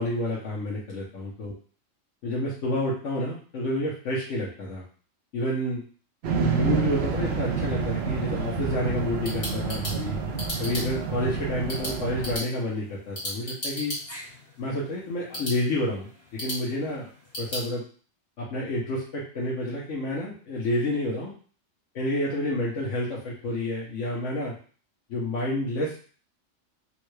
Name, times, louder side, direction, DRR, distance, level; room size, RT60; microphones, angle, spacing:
voice 1, 0.0-1.5 2.2-4.8 5.3-5.8 6.4-10.2 10.6-13.9 14.6-17.1 17.4-17.8 18.4-21.3 21.9-24.5 25.1-26.0, left 1 dB, 70° left, -5 dB, 1.1 m, -29 dB
sound 1, 6.2-12.4, right 5 dB, 60° right, 0.8 m, -29 dB
sound 2, 8.9-17.7, equal, 55° left, 1.6 m, -37 dB
3.6 x 2.2 x 3.1 m, 0.42 s
omnidirectional pair, 1.3 m